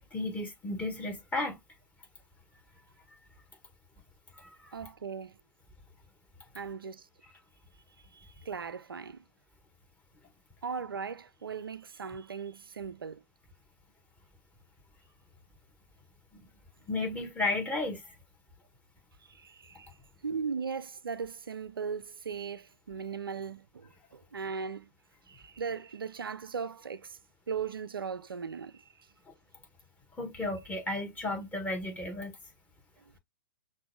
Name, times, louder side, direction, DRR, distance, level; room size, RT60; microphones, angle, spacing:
voice 1, 0.1-1.6 4.4-4.7 16.3-16.4 16.9-18.0 30.2-32.3, left 2 dB, 15° left, 1.6 m, -33 dB
voice 2, 4.7-5.4 6.5-7.1 8.1-9.2 10.6-13.2 19.2-19.9 20.2-24.9 25.3-27.2 27.5-28.8 33.0-33.1, right 6 dB, 85° right, 0.5 m, -38 dB
6.0 x 2.6 x 2.3 m
figure-of-eight pair, 115°, 12 cm